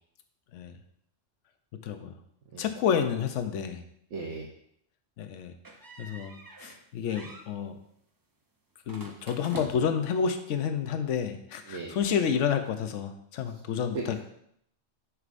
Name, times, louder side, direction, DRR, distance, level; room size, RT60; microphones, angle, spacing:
voice 1, 1.8-2.1 2.6-3.8 5.2-5.5 6.0-6.3 6.6-7.8 8.9-14.2, left 7 dB, 75° left, 8 dB, 1.0 m, -29 dB
voice 2, 4.1-4.5 11.7-12.0 13.9-14.2, right 3 dB, 70° right, -1 dB, 1.1 m, -36 dB
sound 1, 5.6-6.8 7.1-7.5 8.9-10.1, right 2 dB, 25° right, 0.4 m, -44 dB
6.4 x 6.2 x 2.5 m, 0.72 s
omnidirectional pair, 1.3 m